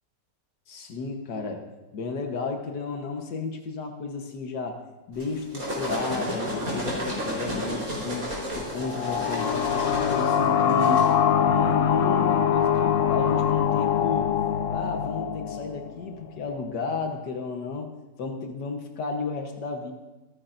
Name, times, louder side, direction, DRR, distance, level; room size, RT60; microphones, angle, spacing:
voice 1, 0.7-11.1 11.4-14.4 14.7-17.9 18.2-19.9, left 4 dB, 90° left, 4 dB, 1.9 m, -33 dB
sound 1, 5.2-11.1, equal, 55° right, 4.7 m, -32 dB
sound 2, 8.8-16.2, left 8 dB, 60° left, 1.0 m, -23 dB
26.5 x 10.0 x 2.6 m, 1.1 s
omnidirectional pair, 1.8 m